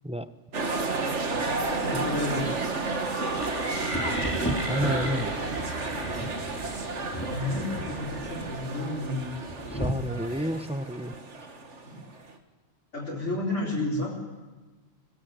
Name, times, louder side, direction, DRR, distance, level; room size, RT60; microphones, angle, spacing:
sound 1, 0.5-12.3, right 3 dB, 70° right, 2.1 m, -32 dB
voice 1, 1.8-2.6 7.3-9.3 11.8-12.0 12.9-14.2, left 2 dB, 75° left, -5 dB, 4.7 m, -31 dB
sound 2, 3.3-8.6, right 1 dB, 55° right, 5.0 m, -37 dB
Thunder, 3.8-9.9, right 1 dB, 10° left, 2.9 m, -35 dB
voice 2, 4.7-5.4 9.7-11.1, equal, 5° right, 11 dB, 0.6 m, -30 dB
23.5 x 19.0 x 9.1 m, 1.2 s
omnidirectional pair, 1.3 m